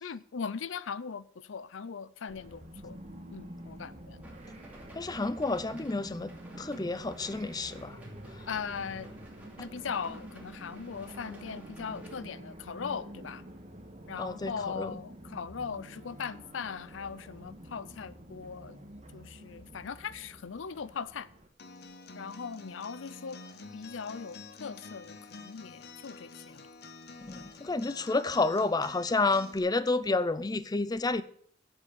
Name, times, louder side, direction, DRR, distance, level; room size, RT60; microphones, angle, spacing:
voice 1, 0.0-3.0 3.3-4.2 8.5-9.1 9.6-13.5 14.1-18.8 19.1-21.3 22.1-23.4 23.7-26.7 27.4-27.5, left 6 dB, 85° left, 0.5 m, -39 dB
sound 1, 2.3-21.5, right 1 dB, 35° right, 1.7 m, -48 dB
sound 2, 4.2-12.2, right 1 dB, 10° right, 2.6 m, -52 dB
voice 2, 4.9-6.3 6.6-8.0 14.2-14.9 27.2-31.2, left 3 dB, 20° left, 0.5 m, -30 dB
Acoustic guitar, 21.6-29.6, left 4 dB, 60° left, 1.1 m, -48 dB
8.1 x 8.0 x 8.5 m
head